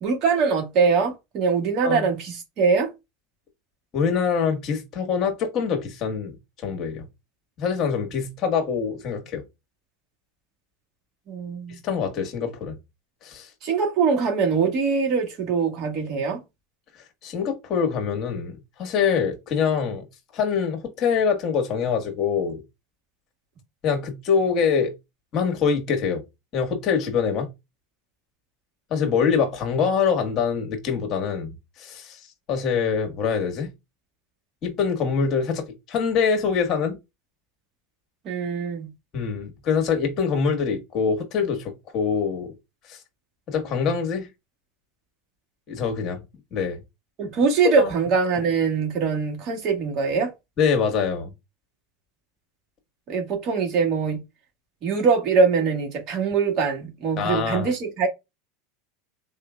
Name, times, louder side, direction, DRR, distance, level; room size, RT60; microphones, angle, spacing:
voice 1, 0.0-2.9 11.3-11.8 13.6-16.4 38.3-38.9 47.2-50.3 53.1-54.2 54.8-58.1, right 5 dB, 50° right, 1.7 m, -23 dB
voice 2, 3.9-7.0 7.6-9.4 11.7-12.8 13.2-13.5 17.2-20.0 20.3-22.6 23.8-24.9 25.3-26.2 26.5-27.5 28.9-32.2 32.5-33.7 34.6-37.0 39.1-42.5 42.9-43.0 43.5-44.3 45.7-46.2 46.5-46.8 47.6-47.9 50.6-51.3 57.2-57.7, left 6 dB, 45° left, 1.6 m, -24 dB
4.2 x 3.2 x 2.4 m
supercardioid pair, 110°, 0 cm